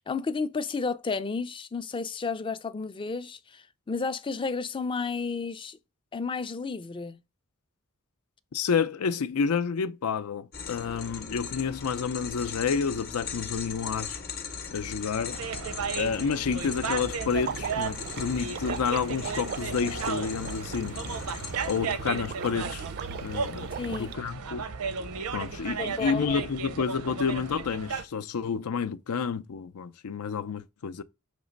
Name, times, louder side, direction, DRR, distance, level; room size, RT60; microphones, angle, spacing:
voice 1, 0.0-5.8 6.1-7.2 23.8-24.1 25.8-26.4, left 4 dB, 25° left, 0.4 m, -32 dB
voice 2, 8.5-14.2 14.7-15.4 15.9-21.0 21.6-22.8 23.2-24.7 25.3-31.0, left 6 dB, 85° left, 0.5 m, -29 dB
sound 1, 10.5-21.8, left 5 dB, 45° left, 0.8 m, -39 dB
sound 2, 15.3-28.0, right 5 dB, 80° right, 0.6 m, -35 dB
Water / Liquid, 17.4-24.1, right 7 dB, 45° right, 0.4 m, -40 dB
6.0 x 3.1 x 5.2 m
head